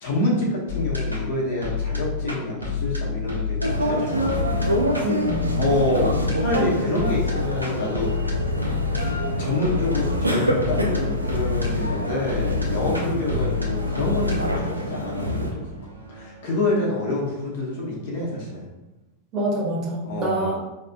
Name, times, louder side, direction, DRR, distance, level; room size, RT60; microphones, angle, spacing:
voice 1, 0.0-4.5 5.6-8.1 9.4-15.6 16.1-18.6 20.1-20.5, left 2 dB, 55° left, -2 dB, 1.0 m, -27 dB
sound 1, 0.7-17.8, left 5 dB, 90° left, 0.6 m, -29 dB
sound 2, 3.6-15.5, equal, 80° right, 0.4 m, -26 dB
voice 2, 5.0-5.5 19.3-20.6, right 1 dB, 35° right, -3 dB, 1.1 m, -26 dB
4.6 x 2.6 x 2.2 m, 1.0 s
figure-of-eight pair, 90°, 0 cm